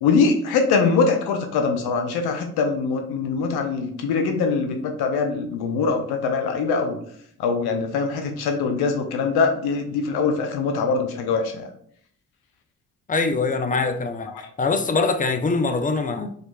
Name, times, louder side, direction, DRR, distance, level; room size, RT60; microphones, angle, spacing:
voice 1, 0.0-7.0 7.4-11.7, left 4 dB, 65° left, 0.6 m, -23 dB
voice 2, 13.1-14.3 14.6-16.4, left 3 dB, 20° left, 0.4 m, -23 dB
4.4 x 2.4 x 2.2 m
hypercardioid pair, 45°, 42 cm